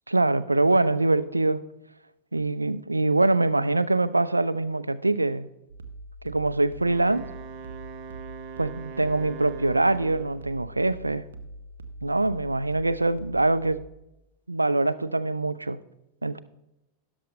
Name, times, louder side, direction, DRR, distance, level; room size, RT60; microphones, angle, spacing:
voice 1, 0.1-1.6 2.3-5.5 6.2-7.3 8.6-11.2 12.0-13.8 14.5-15.8 16.2-16.4, right 2 dB, 85° right, 13 dB, 0.4 m, -24 dB
sound 1, 5.7-13.9, right 1 dB, 65° right, 0.9 m, -43 dB
Wind instrument woodwind instrument, 6.8-10.6, right 8 dB, 45° right, 0.7 m, -42 dB
13.5 x 9.8 x 3.2 m, 0.91 s
figure-of-eight pair, 90°, 0 cm